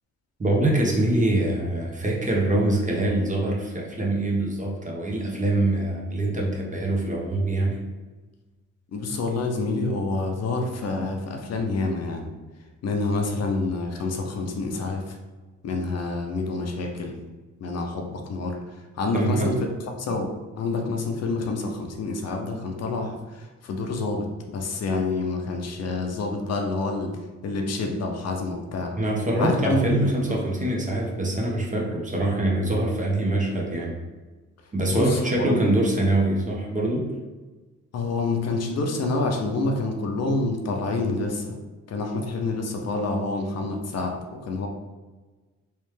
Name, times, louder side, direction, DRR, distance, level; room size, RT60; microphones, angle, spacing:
voice 1, 0.4-7.8 19.1-19.5 29.0-34.0 34.7-37.1, right 1 dB, 25° right, -1 dB, 1.0 m, -24 dB
voice 2, 8.9-12.3 12.8-15.2 15.6-17.2 17.6-19.6 20.0-29.0 29.4-30.4 34.9-35.5 37.9-41.5 41.9-44.7, left 3 dB, 55° left, 3 dB, 0.7 m, -28 dB
3.3 x 3.2 x 3.3 m, 1.2 s
cardioid pair, 90°, 30 cm